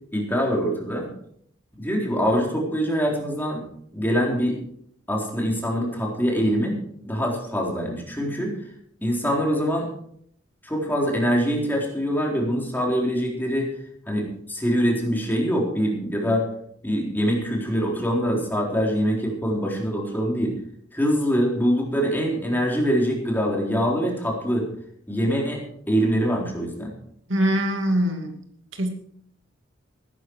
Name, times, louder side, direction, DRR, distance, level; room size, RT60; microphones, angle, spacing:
voice 1, 0.1-1.1 1.8-3.6 3.9-4.6 5.1-6.8 7.0-8.6 9.0-9.9 10.6-13.7 14.1-16.5 16.8-20.5 20.9-24.7 25.1-26.9, equal, 10° left, -1 dB, 3.9 m, -24 dB
voice 2, 27.3-28.3 28.7-28.9, equal, 70° right, 4 dB, 2.6 m, -23 dB
16.0 x 12.5 x 4.8 m, 0.65 s
head